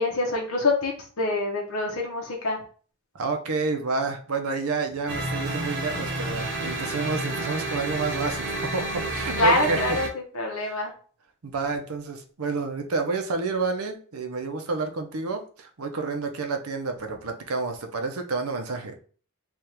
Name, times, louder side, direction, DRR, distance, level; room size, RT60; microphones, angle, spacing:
voice 1, 0.0-2.6 5.9-6.0 6.8-6.9 9.4-10.1 10.3-10.9, left 2 dB, 85° left, 0 dB, 1.0 m, -25 dB
voice 2, 3.1-10.0 10.6-10.9 11.4-18.9, right 4 dB, 85° right, 5 dB, 0.7 m, -29 dB
sound 1, 5.1-10.1, right 1 dB, 60° right, 1.0 m, -30 dB
3.5 x 2.5 x 4.4 m, 0.42 s
head